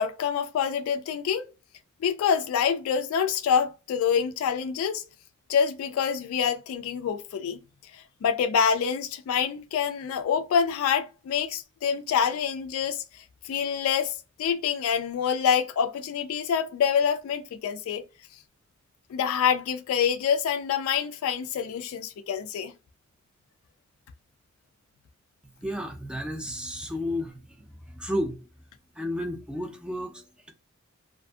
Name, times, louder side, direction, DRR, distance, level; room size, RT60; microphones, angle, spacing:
voice 1, 0.0-1.5 2.0-5.0 5.5-7.6 7.9-18.1 19.1-22.7, left 7 dB, 85° left, 0.3 m, -26 dB
voice 2, 25.4-28.4 28.9-30.5, equal, 5° right, 0.4 m, -33 dB
2.5 x 2.5 x 2.3 m
head